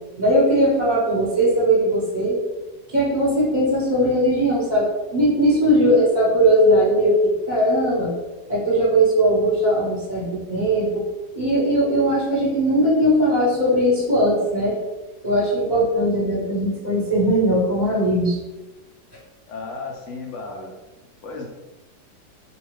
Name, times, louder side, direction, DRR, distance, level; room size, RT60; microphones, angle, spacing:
voice 1, 0.2-2.4 2.9-8.1 8.5-11.0 11.3-14.8 15.2-18.3, equal, 30° right, -8 dB, 1.1 m, -19 dB
voice 2, 19.5-20.7 21.2-21.5, left 3 dB, 90° left, 0 dB, 0.6 m, -34 dB
2.7 x 2.4 x 3.2 m, 1.1 s
omnidirectional pair, 1.9 m